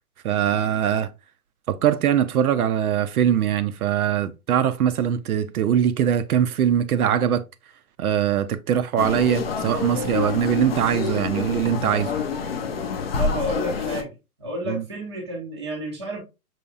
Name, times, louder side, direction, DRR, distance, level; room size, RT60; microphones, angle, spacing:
voice 1, 0.2-1.1 1.7-7.4 8.0-12.1 14.7-14.8, right 9 dB, 65° right, 0.5 m, -22 dB
sound 1, 9.0-14.0, left 6 dB, 40° left, 0.5 m, -27 dB
voice 2, 13.2-14.1 14.4-16.2, equal, 20° right, 0.5 m, -30 dB
5.6 x 2.8 x 2.3 m
hypercardioid pair, 160°, 47 cm